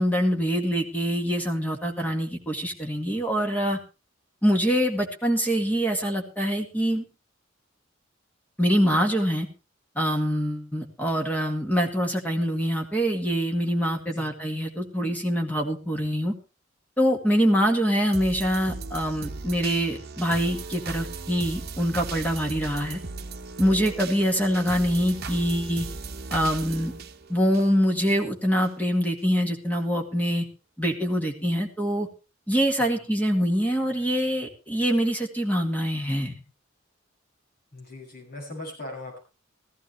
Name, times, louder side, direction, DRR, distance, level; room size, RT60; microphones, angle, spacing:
voice 1, 0.0-3.8 4.4-7.0 8.6-9.5 10.0-16.3 17.0-23.0 23.6-25.9 26.3-26.9 27.3-30.5 30.8-32.1 32.5-36.3, equal, 10° left, 2 dB, 1.9 m, -24 dB
sound 1, 18.1-28.2 28.6-28.7, right 4 dB, 50° right, 1.1 m, -37 dB
voice 2, 37.7-39.2, left 2 dB, 50° left, 0 dB, 7.3 m, -39 dB
16.0 x 15.0 x 3.3 m, 0.31 s
head